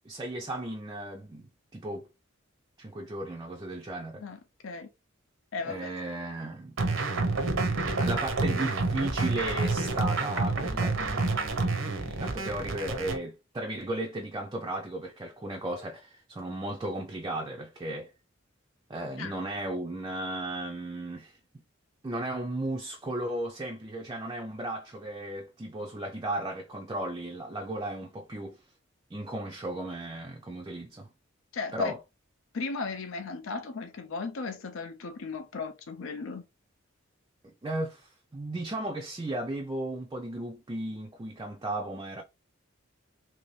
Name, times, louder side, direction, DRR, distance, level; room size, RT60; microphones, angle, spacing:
voice 1, 0.0-2.1 2.8-4.2 5.6-6.8 8.0-18.1 18.9-21.4 22.0-28.6 29.1-31.1 31.7-32.0 37.4-42.2, right 1 dB, 20° right, 0.4 m, -35 dB
voice 2, 4.2-4.9 5.5-5.9 19.2-19.4 31.5-31.9 32.5-36.4, left 4 dB, 70° left, 0.5 m, -36 dB
sound 1, 6.8-13.2, right 3 dB, 65° right, 0.7 m, -28 dB
3.0 x 2.7 x 3.1 m
head